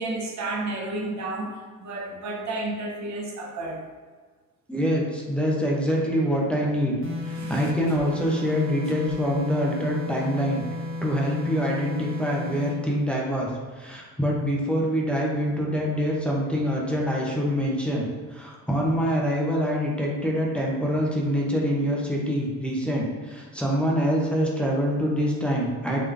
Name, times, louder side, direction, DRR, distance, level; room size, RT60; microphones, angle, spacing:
voice 1, 0.0-3.8 7.3-7.7, right 2 dB, 55° right, 0 dB, 0.8 m, -32 dB
voice 2, 4.7-7.0 7.2-10.6 11.0-26.0, equal, 5° left, -3 dB, 0.9 m, -25 dB
sound 1, 7.0-12.8, left 2 dB, 35° right, 1.1 m, -33 dB
3.9 x 3.2 x 3.3 m, 1.5 s
cardioid pair, 90°, 35 cm